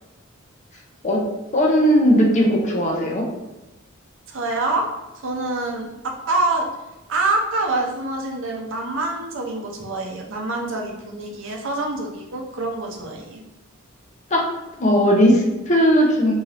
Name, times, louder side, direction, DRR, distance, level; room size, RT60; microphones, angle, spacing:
voice 1, 1.5-3.2 14.3-14.4 14.8-16.3, equal, 35° left, -1 dB, 0.6 m, -17 dB
voice 2, 4.3-4.9 5.2-6.7 7.1-13.4, right 2 dB, 65° right, 1 dB, 0.6 m, -26 dB
2.7 x 2.5 x 3.2 m, 1.0 s
head